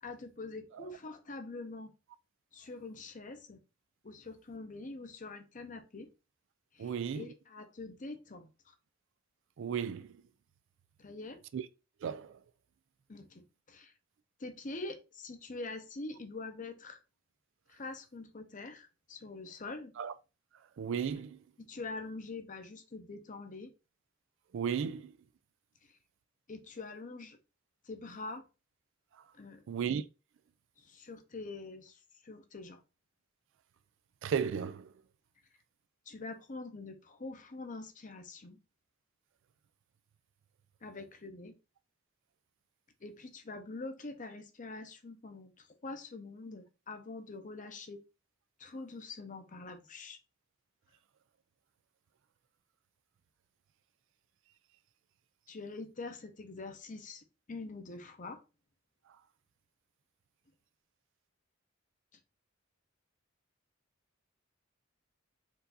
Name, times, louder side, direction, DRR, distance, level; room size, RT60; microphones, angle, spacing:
voice 1, 0.0-1.9 2.5-3.6 4.0-6.1 6.7-8.7 11.0-11.4 13.1-13.9 14.4-17.0 17.7-19.9 21.6-23.7 26.5-27.4 27.8-28.4 29.3-29.6 30.8-32.8 36.1-38.6 40.8-41.6 43.0-48.0 48.6-50.2 55.5-58.4, left 3 dB, 40° left, 0.7 m, -45 dB
voice 2, 6.8-7.2 9.6-10.1 11.5-11.6 12.0-12.3 20.0-20.1 20.8-21.4 24.5-25.1 29.7-30.0 34.2-34.9, right 7 dB, 65° right, 0.3 m, -34 dB
4.5 x 2.6 x 4.0 m
head